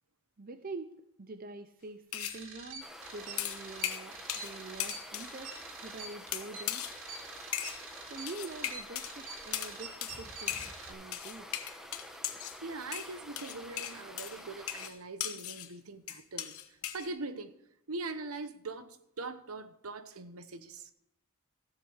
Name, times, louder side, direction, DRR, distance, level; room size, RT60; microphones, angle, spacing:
voice 1, 0.4-0.9 1.2-5.5 5.8-6.8 8.0-11.5, right 3 dB, 40° right, 0.6 m, -45 dB
sound 1, 2.1-2.4 3.4-4.5 4.8-5.3 6.3-7.0 7.5-7.8 8.3-9.1 9.5-9.7 10.0-10.2 10.5-10.8 11.1-12.6 12.9-15.7 16.1-17.1, left 11 dB, 80° left, 1.1 m, -37 dB
sound 2, 2.2-10.9, right 4 dB, 60° right, 2.4 m, -46 dB
sound 3, 2.8-14.9, equal, ahead, 1.1 m, -49 dB
voice 2, 12.6-17.6 17.9-20.9, right 3 dB, 75° right, 1.1 m, -42 dB
15.0 x 7.4 x 6.4 m
head